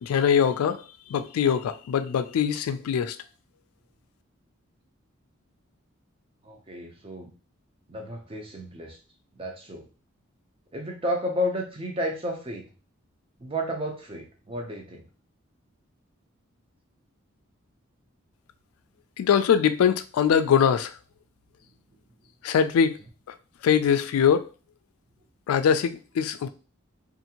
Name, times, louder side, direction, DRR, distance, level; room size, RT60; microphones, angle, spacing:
voice 1, 0.0-3.2 19.2-21.0 22.4-23.0 23.3-23.4 23.6-24.5 25.5-26.5, left 7 dB, 90° left, 0.3 m, -22 dB
voice 2, 6.4-7.3 7.9-9.0 9.4-9.9 10.7-12.6 13.4-15.0, equal, 25° right, 0.5 m, -32 dB
2.6 x 2.5 x 2.8 m
head